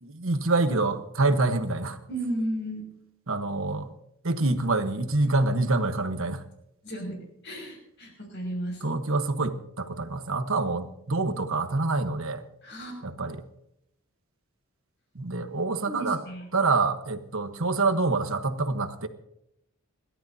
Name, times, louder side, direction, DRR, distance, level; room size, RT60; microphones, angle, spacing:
voice 1, 0.0-2.0 3.3-3.9 4.2-6.4 8.8-12.4 13.0-13.4 15.1-16.2 16.5-19.1, right 3 dB, 65° right, 8 dB, 1.3 m, -26 dB
voice 2, 2.1-2.9 6.8-7.2 7.4-8.8 12.6-13.0 15.8-16.5, right 1 dB, 50° left, 2 dB, 6.6 m, -33 dB
28.0 x 12.5 x 2.8 m, 0.78 s
head